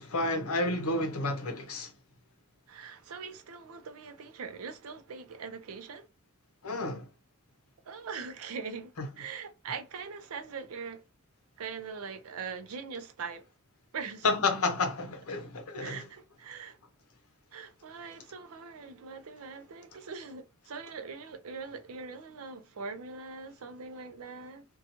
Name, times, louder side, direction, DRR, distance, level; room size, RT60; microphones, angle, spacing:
voice 1, 0.0-1.9 6.6-7.1 9.0-9.1 14.2-16.0, left 3 dB, 80° left, 0.7 m, -30 dB
voice 2, 2.7-6.1 7.8-11.0 11.6-13.4 13.9-14.3 15.8-16.8 17.5-24.7, right 5 dB, 75° right, 0.5 m, -42 dB
2.7 x 2.3 x 2.7 m
head